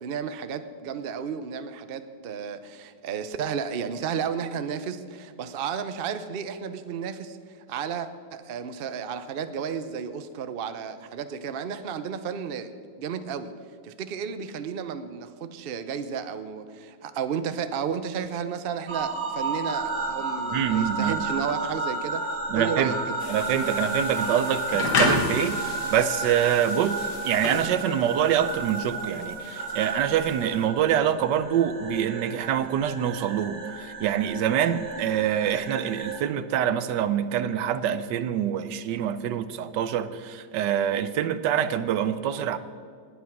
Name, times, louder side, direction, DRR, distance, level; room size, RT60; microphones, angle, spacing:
voice 1, 0.0-12.7 13.0-13.5 13.8-23.1, right 7 dB, 60° right, 0.6 m, -33 dB
sound 1, 18.9-36.2, right 3 dB, 35° right, 2.1 m, -32 dB
voice 2, 20.5-21.2 22.5-22.9 23.3-42.6, right 9 dB, 75° right, 1.3 m, -25 dB
sound 2, 23.2-30.7, left 4 dB, 65° left, 2.0 m, -32 dB
19.0 x 8.2 x 6.0 m
omnidirectional pair, 2.0 m